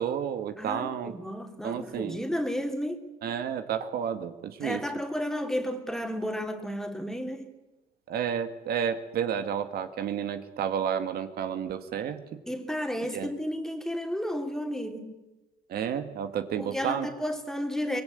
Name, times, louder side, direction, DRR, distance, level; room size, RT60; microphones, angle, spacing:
voice 1, 0.0-1.1 1.6-2.2 3.2-4.8 8.1-12.2 13.1-13.3 15.7-17.1, right 8 dB, 65° right, 1.9 m, -31 dB
voice 2, 0.6-3.1 4.6-7.5 12.5-15.1 16.6-18.0, equal, 5° left, 3.1 m, -32 dB
24.5 x 20.5 x 9.2 m
cardioid pair, 110°, 17 cm